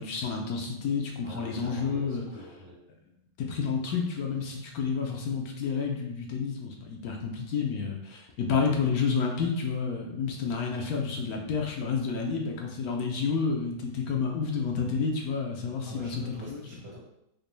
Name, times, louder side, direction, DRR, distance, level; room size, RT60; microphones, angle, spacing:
voice 1, 0.0-2.2 3.4-16.1 16.5-16.6, left 5 dB, 85° left, 1 dB, 1.2 m, -30 dB
voice 2, 1.2-2.8 15.9-17.0, equal, 60° right, -6 dB, 1.8 m, -44 dB
5.0 x 2.2 x 3.2 m, 0.83 s
omnidirectional pair, 1.5 m